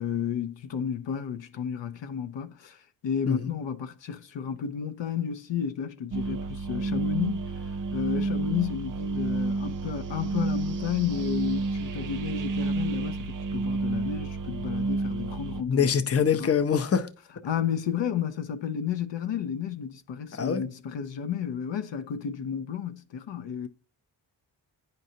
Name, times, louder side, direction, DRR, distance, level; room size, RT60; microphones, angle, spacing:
voice 1, 0.0-7.4 7.9-15.9 16.3-16.5 17.4-23.7, left 8 dB, 70° left, 0.7 m, -32 dB
sound 1, 6.1-15.6, right 3 dB, 45° right, 0.6 m, -30 dB
voice 2, 15.7-17.1 20.3-20.6, left 7 dB, 30° left, 0.7 m, -24 dB
8.8 x 5.3 x 2.7 m
cardioid pair, 65°, 45 cm